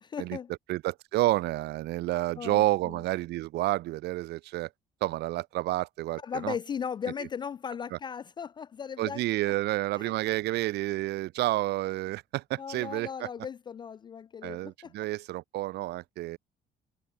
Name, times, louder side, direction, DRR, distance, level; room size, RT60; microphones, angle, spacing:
voice 1, 0.0-0.5 2.4-3.0 6.2-9.2 9.9-10.1 12.6-14.9, left 7 dB, 25° left, 0.3 m, -37 dB
voice 2, 0.7-4.7 5.0-6.5 9.0-13.3 14.4-16.4, right 17 dB, 70° right, 0.6 m, -30 dB
cardioid pair, 175°, 18 cm